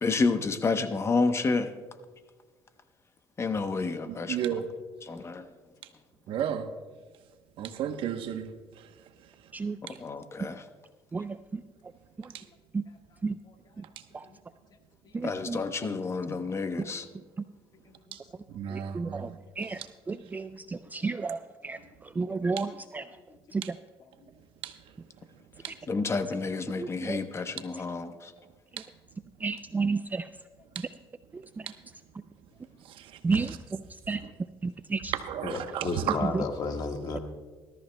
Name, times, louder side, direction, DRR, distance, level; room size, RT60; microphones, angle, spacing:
voice 1, 0.0-1.7 3.4-4.6 5.0-5.4 6.3-6.4 9.8-10.6 15.2-17.1 25.9-28.3, left 4 dB, 30° left, 0.8 m, -30 dB
voice 2, 4.1-4.7 6.3-6.7 7.6-8.5 8.8-8.9 12.3-12.4 18.1-18.2 18.5-19.9 23.6-23.7 24.6-24.8 25.6-25.7 28.8-28.9 30.7-30.9 31.7-31.8 32.8-33.6 34.2-34.3 35.1-36.2, right 9 dB, 65° right, 0.9 m, -34 dB
voice 3, 15.1-15.6 18.9-19.3 19.6-19.8 20.1-20.5 20.9-21.4 21.6-21.8 22.2-22.7 22.9-23.0 23.5-23.6 26.8-27.2 29.4-30.2 33.2-33.5 34.1-34.2 34.6-35.1, right 4 dB, 20° right, 0.3 m, -30 dB
voice 4, 17.8-18.2 18.5-18.6 20.7-21.1 22.2-22.6 23.3-23.6 25.7-25.8 35.4-37.2, left 4 dB, 45° left, 1.5 m, -35 dB
20.0 x 13.5 x 2.2 m
cardioid pair, 105°, 9 cm